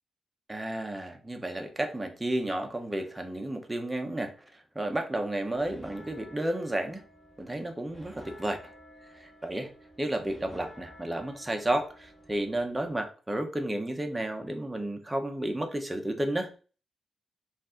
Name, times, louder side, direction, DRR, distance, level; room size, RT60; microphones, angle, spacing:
voice 1, 0.5-7.0 7.4-8.7 9.1-9.7 10.0-16.5, right 1 dB, 10° right, 5 dB, 0.8 m, -32 dB
sound 1, 5.4-13.0, equal, 10° left, 1.1 m, -52 dB
5.2 x 2.5 x 3.7 m, 0.38 s
cardioid pair, 110°, 0 cm